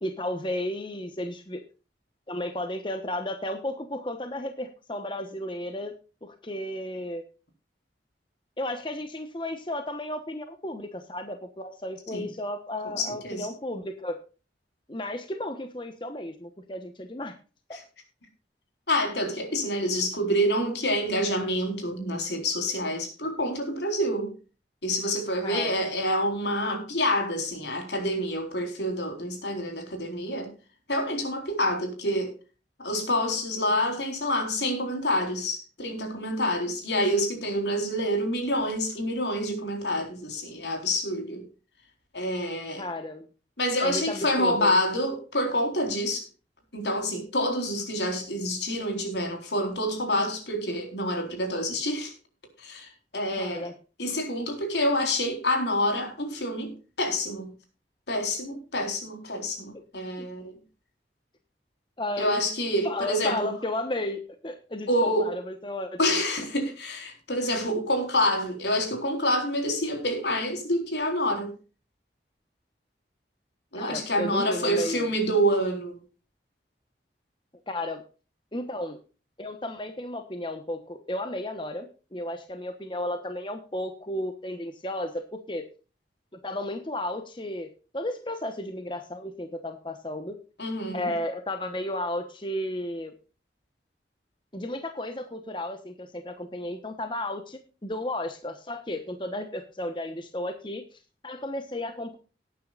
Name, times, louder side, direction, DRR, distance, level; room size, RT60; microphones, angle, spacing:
voice 1, 0.0-1.6 2.3-5.9 6.2-7.2 8.6-14.2 14.9-17.4 20.0-20.1 25.4-25.9 42.8-43.3 43.8-44.8 53.4-53.7 60.2-60.3 62.0-62.4 62.8-66.2 73.7-75.1 77.7-78.0 78.5-79.0 79.4-85.6 86.4-90.4 90.9-93.1 94.5-102.2, left 1 dB, 25° left, 1.1 m, -33 dB
voice 2, 12.8-13.5 18.9-24.3 24.8-30.5 30.9-32.3 32.8-41.4 42.1-42.8 43.6-46.3 46.7-52.1 52.6-52.9 53.1-53.7 54.0-56.7 57.0-57.5 58.1-60.5 62.2-63.5 64.9-65.3 66.0-71.5 73.7-76.0 90.6-91.1, equal, 80° left, 4.0 m, -27 dB
18.5 x 9.5 x 2.4 m
head